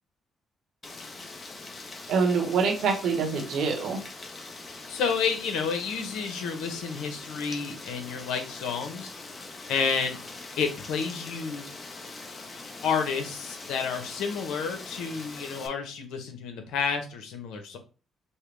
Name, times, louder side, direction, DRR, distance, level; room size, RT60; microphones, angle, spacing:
Rain, 0.8-15.7, left 3 dB, 35° left, 0.9 m, -42 dB
voice 1, 2.1-4.0, right 5 dB, 75° right, 2 dB, 1.2 m, -25 dB
voice 2, 4.9-9.1 9.7-10.2 10.6-11.7 12.8-17.8, left 6 dB, 90° left, 6 dB, 0.9 m, -30 dB
5.5 x 2.2 x 3.3 m, 0.34 s
cardioid pair, 90°, 0 cm